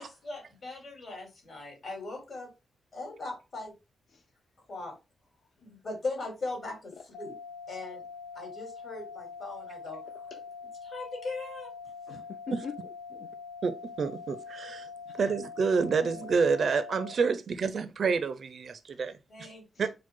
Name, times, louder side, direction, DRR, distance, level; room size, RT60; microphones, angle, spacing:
voice 1, 0.0-2.5 2.9-3.7 4.7-4.9 5.6-6.9 7.2-7.3 7.7-8.0 8.3-10.0 10.8-11.7 19.3-19.8, left 3 dB, 40° left, 2.2 m, -39 dB
sound 1, 7.1-17.1, left 5 dB, 80° left, 0.9 m, -44 dB
voice 2, 12.1-13.3 15.1-15.4 19.7-19.9, left 6 dB, 55° left, 0.4 m, -44 dB
voice 3, 13.6-14.9 15.2-19.2 19.8-19.9, right 5 dB, 45° right, 0.4 m, -28 dB
4.6 x 2.1 x 4.4 m
wide cardioid pair, 150°, 0 cm